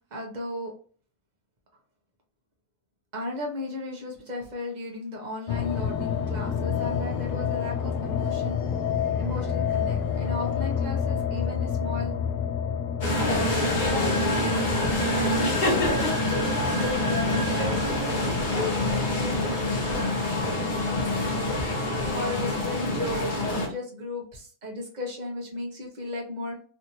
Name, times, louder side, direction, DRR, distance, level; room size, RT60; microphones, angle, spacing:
voice 1, 0.1-0.7 3.1-8.6 9.2-12.1 13.3-14.1 15.0-15.9 16.7-26.6, left 1 dB, 35° right, 0 dB, 0.8 m, -36 dB
sound 1, 5.5-21.5, left 7 dB, 85° left, 1.2 m, -30 dB
sound 2, 13.0-23.7, left 1 dB, 40° left, 0.9 m, -26 dB
3.5 x 2.6 x 2.9 m, 0.44 s
omnidirectional pair, 1.7 m